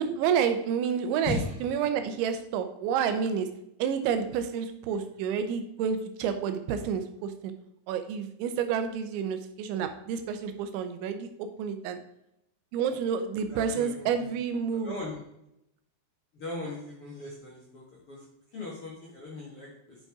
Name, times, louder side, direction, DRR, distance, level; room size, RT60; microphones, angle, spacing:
voice 1, 0.0-3.5 3.8-7.5 7.9-12.0 12.7-14.9, right 7 dB, 90° right, 8 dB, 3.3 m, -29 dB
voice 2, 1.2-1.5 13.5-14.3 14.8-15.2 16.3-18.2 18.5-20.0, left 2 dB, 50° left, -4 dB, 1.8 m, -38 dB
10.5 x 5.4 x 4.9 m, 0.81 s
omnidirectional pair, 5.2 m